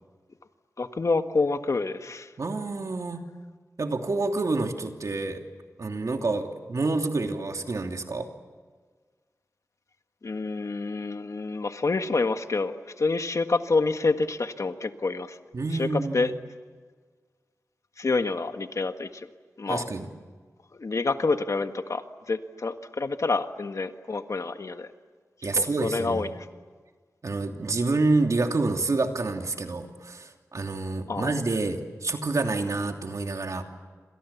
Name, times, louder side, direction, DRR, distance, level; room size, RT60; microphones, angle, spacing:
voice 1, 0.8-2.3 10.2-15.4 15.7-15.9 16.1-16.3 18.0-19.3 19.6-19.9 20.7-24.9 25.5-26.3 31.1-31.4, left 3 dB, 65° left, 8 dB, 1.6 m, -28 dB
voice 2, 2.4-3.2 3.8-5.4 5.8-8.3 15.5-16.3 19.7-20.1 25.4-26.3 27.2-33.6, right 3 dB, 70° right, 4 dB, 2.9 m, -28 dB
28.5 x 26.5 x 7.2 m, 1.5 s
wide cardioid pair, 75°, 6 cm